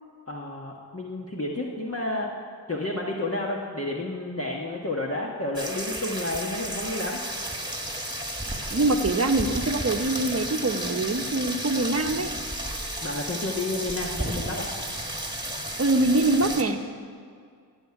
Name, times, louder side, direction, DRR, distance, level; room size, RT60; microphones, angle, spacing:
voice 1, 0.3-2.3 2.7-7.2 13.0-14.7, left 2 dB, 35° left, -2 dB, 1.4 m, -31 dB
sound 1, 5.6-16.6, right 1 dB, 10° right, 1.7 m, -33 dB
voice 2, 8.7-12.4 15.8-16.8, right 2 dB, 35° right, 5 dB, 1.0 m, -24 dB
15.5 x 7.5 x 9.8 m, 2.2 s
wide cardioid pair, 70°, 40 cm